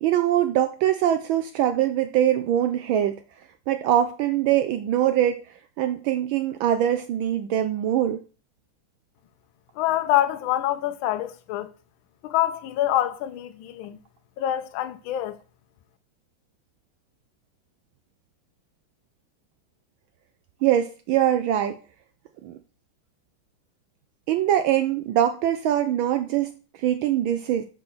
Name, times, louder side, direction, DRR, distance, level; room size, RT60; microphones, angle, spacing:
voice 1, 0.0-3.2 3.7-5.4 5.8-8.2 20.6-21.7 22.4-22.6 24.3-27.6, right 11 dB, 75° right, 1.3 m, -23 dB
voice 2, 9.8-11.7 12.2-14.0 14.4-15.4, left 13 dB, 75° left, 1.4 m, -25 dB
5.6 x 5.4 x 6.0 m
omnidirectional pair, 2.4 m